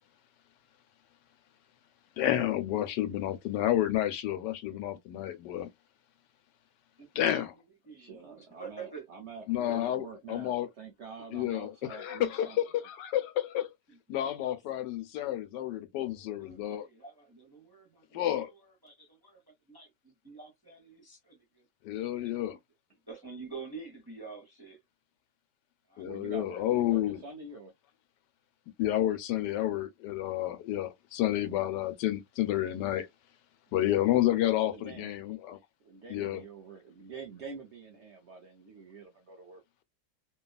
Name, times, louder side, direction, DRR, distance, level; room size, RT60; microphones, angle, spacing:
voice 1, 2.2-5.7 7.1-7.5 9.5-10.7 11.3-13.7 14.1-16.9 18.1-18.5 21.8-22.6 26.0-27.2 28.8-33.1 33.7-35.6 36.1-36.4, left 13 dB, 85° left, 1.2 m, -30 dB
voice 2, 7.0-7.4 7.8-9.1 9.5-9.9 14.1-14.8 16.0-19.9 20.2-21.7 22.2-22.6 23.1-24.8 25.9-26.1, right 5 dB, 20° right, 0.6 m, -48 dB
voice 3, 7.9-12.6 26.0-27.7 34.5-35.3 35.8-39.6, right 5 dB, 60° right, 0.7 m, -47 dB
3.0 x 2.3 x 2.2 m
omnidirectional pair, 1.8 m